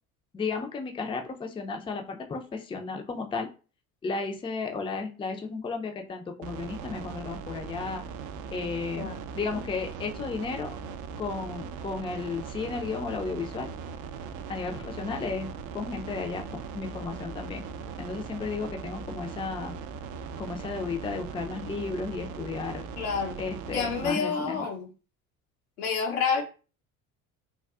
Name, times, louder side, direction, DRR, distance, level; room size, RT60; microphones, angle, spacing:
voice 1, 0.3-3.5 4.0-8.0 8.5-9.1 9.4-10.8 11.2-13.7 14.5-15.5 15.7-17.6 18.0-19.8 20.4-22.8 23.4-24.7, left 4 dB, 15° left, 0.4 m, -33 dB
sound 1, 6.4-24.1, right 6 dB, 45° right, 0.5 m, -39 dB
voice 2, 23.0-23.4 23.7-24.9 25.8-26.4, left 5 dB, 80° left, 0.8 m, -28 dB
3.5 x 2.3 x 2.3 m
hypercardioid pair, 65°, 42 cm